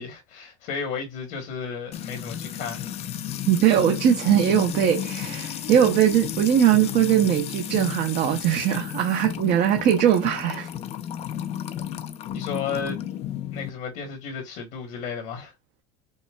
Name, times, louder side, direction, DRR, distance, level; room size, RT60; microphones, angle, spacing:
voice 1, 0.0-2.9 12.3-13.0 13.5-15.5, left 5 dB, 60° left, 1.2 m, -33 dB
Music / Water tap faucet / Trickle dribble, 1.9-13.7, left 10 dB, 40° left, 0.5 m, -33 dB
voice 2, 3.5-10.7, right 10 dB, 50° right, 0.8 m, -20 dB
5.4 x 2.2 x 2.3 m
supercardioid pair, 120°, 17 cm